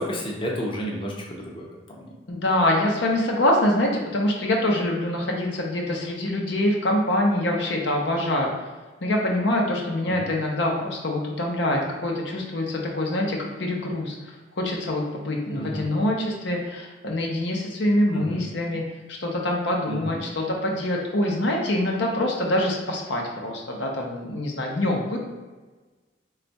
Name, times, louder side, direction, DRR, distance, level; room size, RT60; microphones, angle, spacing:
voice 1, 0.0-1.7 10.1-10.3 15.5-15.9 18.1-18.4 19.9-20.2, equal, 30° left, -2 dB, 0.6 m, -31 dB
voice 2, 2.3-8.5 9.0-14.1 14.6-18.8 19.2-25.2, left 1 dB, 80° left, 0 dB, 0.7 m, -25 dB
3.3 x 2.4 x 4.0 m, 1.3 s
head